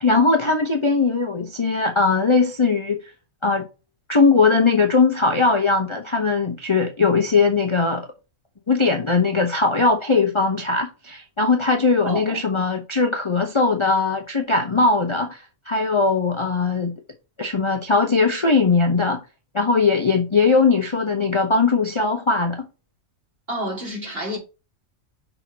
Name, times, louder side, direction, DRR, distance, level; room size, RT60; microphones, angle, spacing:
voice 1, 0.0-3.0 3.4-3.6 4.1-8.1 8.7-16.9 17.4-19.2 19.5-22.7, left 4 dB, 30° left, 0.7 m, -20 dB
voice 2, 12.0-12.4 23.5-24.4, right 1 dB, 45° right, 3.2 m, -29 dB
5.8 x 3.9 x 5.9 m
omnidirectional pair, 1.4 m